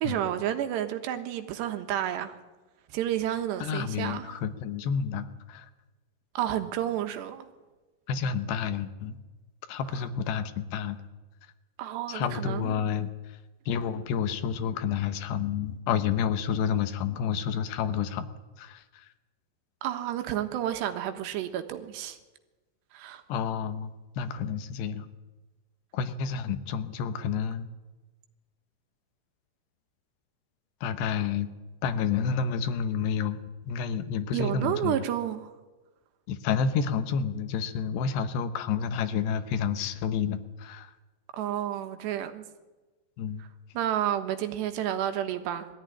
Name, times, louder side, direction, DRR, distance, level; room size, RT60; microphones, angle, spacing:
voice 1, 0.0-2.3 2.9-4.3 6.4-7.5 11.8-12.7 19.8-22.2 22.9-23.2 34.3-35.5 41.3-42.5 43.8-45.7, right 11 dB, 80° right, 8 dB, 3.5 m, -30 dB
voice 2, 3.6-5.7 8.1-9.2 9.7-11.0 12.1-13.4 13.7-18.3 18.6-19.1 23.3-25.1 25.9-27.7 30.8-31.5 31.8-35.0 36.3-40.9 43.2-43.4, left 7 dB, 80° left, 10 dB, 3.2 m, -30 dB
21.5 x 14.5 x 10.0 m, 1.2 s
omnidirectional pair, 4.9 m